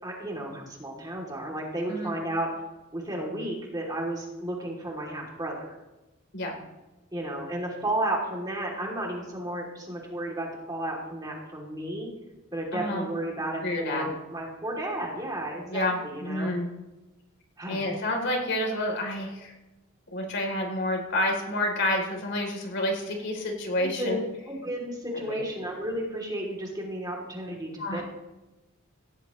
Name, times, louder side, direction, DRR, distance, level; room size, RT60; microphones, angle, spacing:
voice 1, 0.0-2.5 2.9-5.7 7.1-12.1 12.5-16.5 17.6-17.9 23.8-28.0, right 1 dB, 20° right, -2 dB, 2.9 m, -33 dB
voice 2, 12.7-13.1 13.6-14.1 15.7-16.7 17.7-19.5 20.1-24.2 25.1-25.4 27.8-28.0, left 1 dB, 55° left, 2 dB, 3.4 m, -29 dB
17.5 x 17.0 x 3.1 m, 1.1 s
head